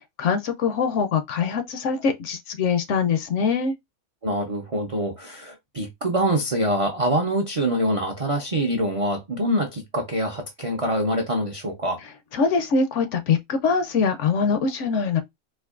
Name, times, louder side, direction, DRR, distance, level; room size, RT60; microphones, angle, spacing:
voice 1, 0.0-3.7 12.3-15.2, left 5 dB, 65° left, 0.8 m, -23 dB
voice 2, 4.2-12.0, right 1 dB, 50° right, 0.4 m, -25 dB
4.4 x 2.5 x 2.4 m
omnidirectional pair, 1.5 m